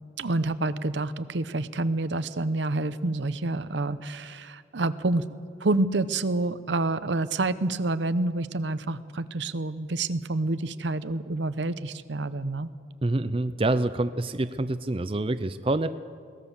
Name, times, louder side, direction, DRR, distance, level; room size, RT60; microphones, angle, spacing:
voice 1, 0.2-5.3 5.6-12.7, right 2 dB, 75° right, 13 dB, 0.8 m, -28 dB
voice 2, 13.0-15.9, right 2 dB, 30° right, 11 dB, 0.5 m, -26 dB
22.0 x 18.0 x 7.2 m, 2.2 s
head